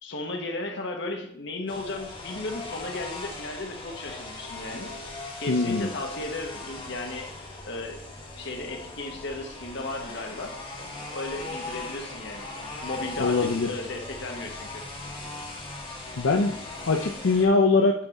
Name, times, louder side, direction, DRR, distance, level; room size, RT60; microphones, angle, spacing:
voice 1, 0.0-4.9 5.4-7.3 7.6-8.0 8.4-10.6 11.1-12.5 12.8-14.8, left 2 dB, 60° left, 2 dB, 1.2 m, -35 dB
sound 1, 1.7-17.5, left 2 dB, 25° left, 1.2 m, -39 dB
voice 2, 5.5-5.9 13.2-13.7 16.2-16.6 16.8-17.9, left 3 dB, 80° left, 2 dB, 0.5 m, -22 dB
8.9 x 3.6 x 4.1 m, 0.68 s
head